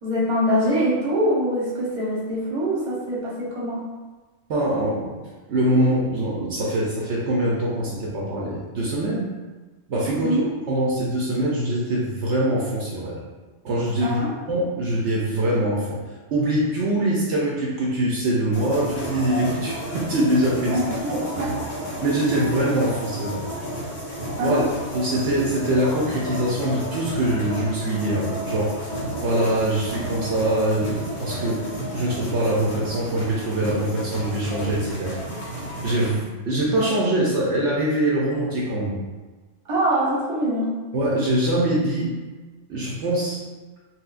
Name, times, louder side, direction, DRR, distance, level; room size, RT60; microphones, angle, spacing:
voice 1, 0.0-3.9 10.1-10.4 14.0-14.3 20.7-21.6 21.9-22.0 24.4-24.7 39.6-40.7, equal, 30° right, -6 dB, 0.8 m, -24 dB
voice 2, 4.5-5.2 5.5-9.3 9.9-10.3 10.7-13.2 13.6-14.2 14.5-16.0 16.3-20.8 21.1-21.2 22.0-23.4 24.4-24.6 24.9-35.2 35.8-39.0 40.9-42.1 42.7-43.4, right 1 dB, 70° right, -5 dB, 0.9 m, -23 dB
sound 1, 18.5-36.1, equal, 35° left, 0.7 m, -32 dB
4.1 x 2.1 x 2.4 m, 1.3 s
omnidirectional pair, 1.3 m